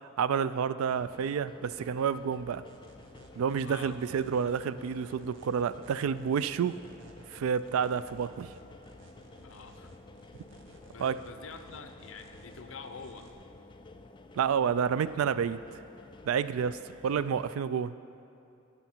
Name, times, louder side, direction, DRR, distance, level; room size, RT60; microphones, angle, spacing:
voice 1, 0.2-2.6 3.4-6.8 7.3-8.5 11.0-11.2 14.3-15.6 16.2-17.9, right 7 dB, 85° right, 15 dB, 0.3 m, -29 dB
sound 1, 0.9-17.6, left 2 dB, 25° left, 0.3 m, -52 dB
sound 2, 2.7-13.3, right 2 dB, 65° right, 0.8 m, -57 dB
voice 2, 3.6-4.0 9.4-9.9 10.9-13.3, left 5 dB, 70° left, 8 dB, 0.6 m, -46 dB
15.5 x 5.6 x 4.4 m, 2.8 s
head